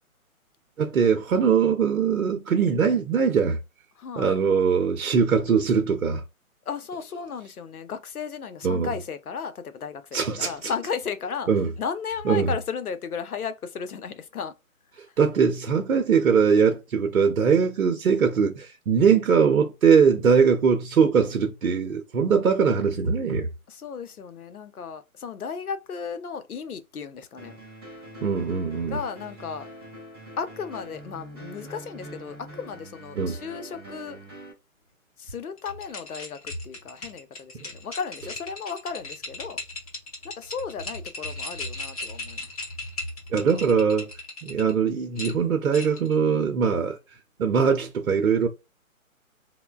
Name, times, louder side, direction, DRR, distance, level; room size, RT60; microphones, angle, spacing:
voice 1, 0.8-3.6 4.2-6.2 8.6-8.9 10.1-10.7 11.5-11.7 12.2-12.5 15.2-23.5 28.2-29.0 33.2-33.4 43.3-44.1 44.4-48.5, right 6 dB, 70° right, 0.7 m, -21 dB
voice 2, 4.0-4.4 6.7-11.5 11.8-14.5 14.9-15.0 23.7-27.6 28.9-29.7 30.4-34.2 35.2-39.6 40.2-42.5, left 6 dB, 85° left, 0.7 m, -35 dB
sound 1, 27.4-34.5, right 1 dB, 20° right, 0.5 m, -44 dB
sound 2, 35.6-44.7 45.2-46.1, left 2 dB, 25° left, 0.7 m, -37 dB
3.2 x 2.1 x 2.2 m
figure-of-eight pair, 155°, 43 cm